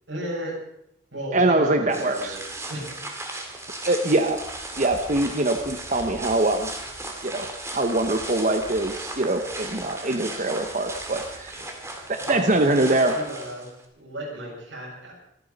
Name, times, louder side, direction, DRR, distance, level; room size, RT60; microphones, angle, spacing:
voice 1, 0.1-0.6 1.1-2.4 2.7-3.0 11.5-11.6 12.2-13.7 13.9-15.1, equal, 90° right, -3 dB, 7.3 m, -35 dB
voice 2, 1.3-2.4 3.8-4.4 4.8-6.7 7.2-7.5 7.7-11.5 12.1-13.2, right 2 dB, 45° right, 5 dB, 1.0 m, -23 dB
sound 1, 1.9-13.8, right 2 dB, 15° right, 2.3 m, -36 dB
26.0 x 9.3 x 5.3 m, 0.77 s
head